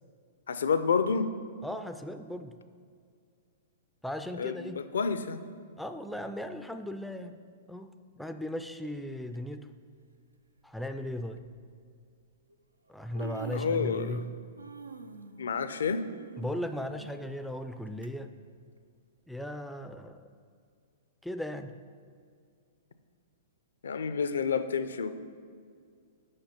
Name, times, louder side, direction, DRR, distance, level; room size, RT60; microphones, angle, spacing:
voice 1, 0.5-1.3 4.4-5.4 13.5-14.2 15.4-16.0 23.8-25.2, left 5 dB, 70° left, 12 dB, 0.5 m, -29 dB
voice 2, 1.6-2.6 4.0-4.8 5.8-7.4 7.7-9.7 10.6-11.4 12.9-14.3 16.4-18.3 19.3-20.3 21.2-21.7, left 1 dB, ahead, 8 dB, 0.4 m, -37 dB
Human voice, 9.3-9.6 10.6-10.7 11.3-11.5 12.5-12.6 12.9-14.3 14.6-18.1 18.5-18.6 19.4-19.5, right 4 dB, 90° right, 0.4 m, -45 dB
6.6 x 5.4 x 5.8 m, 2.2 s
figure-of-eight pair, 115°, 0 cm